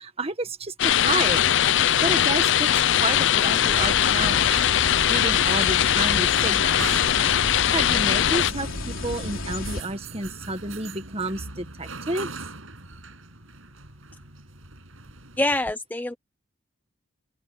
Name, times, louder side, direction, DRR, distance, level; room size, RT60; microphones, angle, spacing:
voice 1, 0.0-2.7 3.0-7.0 7.7-12.3, right 2 dB, 30° right, 1.6 m, -31 dB
sound 1, 0.8-8.5, left 10 dB, 60° left, 0.5 m, -21 dB
sound 2, 3.7-9.8, left 2 dB, 85° left, 3.4 m, -33 dB
sound 3, 4.8-15.4, right 3 dB, 85° right, 7.0 m, -40 dB
voice 2, 15.4-16.1, left 1 dB, 10° left, 0.7 m, -25 dB
open air
head